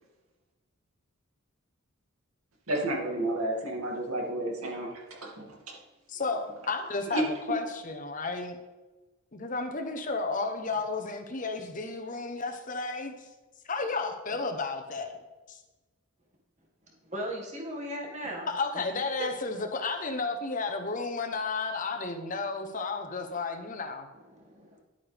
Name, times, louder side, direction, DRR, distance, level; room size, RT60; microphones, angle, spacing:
voice 1, 2.7-5.8 7.1-7.2, right 1 dB, 90° right, -1 dB, 2.5 m, -31 dB
voice 2, 6.1-8.6 9.3-13.1 13.7-15.2 15.5-15.6 18.5-24.1, left 3 dB, 40° left, 6 dB, 0.9 m, -32 dB
voice 3, 17.0-18.5 18.7-18.8 19.2-19.3 24.3-24.7, equal, 35° right, -1 dB, 2.0 m, -37 dB
10.5 x 8.9 x 3.5 m, 1.2 s
head